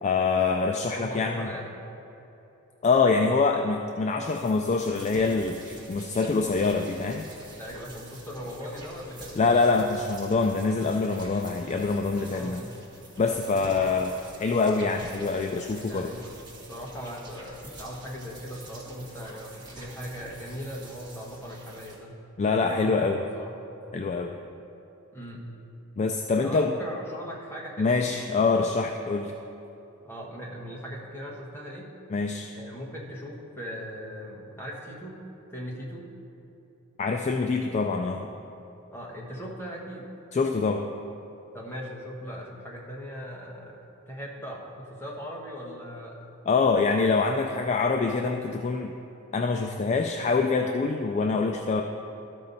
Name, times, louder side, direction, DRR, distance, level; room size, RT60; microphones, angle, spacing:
voice 1, 0.0-1.5 2.8-7.2 9.4-12.6 13.2-14.1 14.4-16.1 22.4-23.2 23.9-24.4 26.0-26.7 27.8-29.3 32.1-32.5 37.0-38.3 40.3-40.8 46.5-48.9 49.3-51.8, left 4 dB, 30° left, 3 dB, 0.3 m, -25 dB
voice 2, 0.9-1.6 7.6-9.6 12.3-12.6 15.7-16.2 16.7-22.1 22.6-23.5 25.1-25.4 26.4-28.0 28.4-28.8 30.0-31.9 32.5-35.2 35.5-36.1 38.9-40.1 41.5-43.8 44.1-46.1, equal, 10° left, -3 dB, 1.2 m, -39 dB
sound 1, 4.3-22.0, right 2 dB, 20° right, 1.5 m, -47 dB
13.0 x 5.4 x 4.0 m, 3.0 s
head